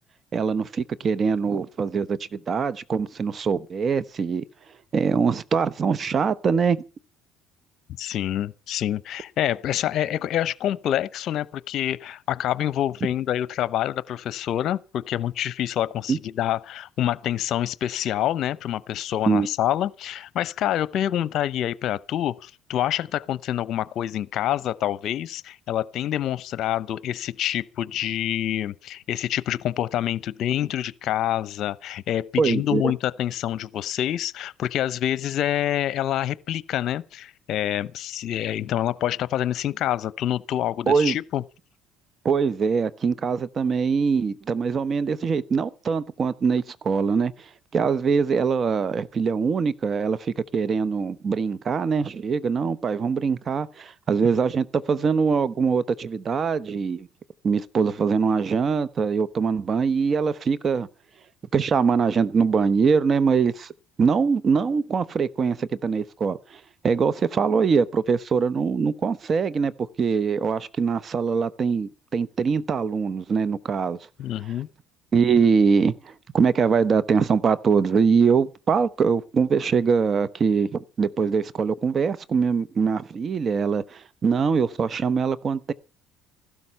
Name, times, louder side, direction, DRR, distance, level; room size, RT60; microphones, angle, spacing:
voice 1, 0.3-4.4 4.9-6.8 16.1-16.2 19.3-19.5 32.4-32.9 40.9-41.2 42.2-47.3 47.7-57.1 57.4-60.9 61.5-63.7 64.0-69.7 70.0-74.0 75.1-85.7, right 5 dB, 40° right, 1.1 m, -23 dB
voice 2, 8.0-41.4 74.2-74.7, left 11 dB, 60° left, 0.8 m, -27 dB
15.5 x 12.5 x 5.6 m
supercardioid pair, 80°, 0 cm